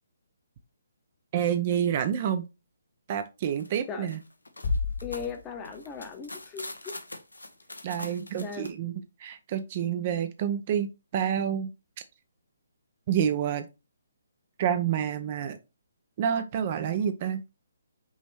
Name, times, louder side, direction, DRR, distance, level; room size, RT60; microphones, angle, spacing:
voice 1, 1.3-2.4 3.1-4.2 7.8-8.9 9.2-11.7 13.1-13.7 14.6-15.6 16.2-17.4, right 9 dB, 35° right, 0.5 m, -28 dB
sound 1, 3.6-3.7 4.1-8.7, left 2 dB, 80° left, 0.9 m, -43 dB
sound 2, 4.6-6.6, left 4 dB, 45° left, 0.9 m, -33 dB
voice 2, 5.0-7.0 8.4-8.7, left 6 dB, 15° left, 0.8 m, -38 dB
5.4 x 3.0 x 3.2 m
figure-of-eight pair, 140°, 0 cm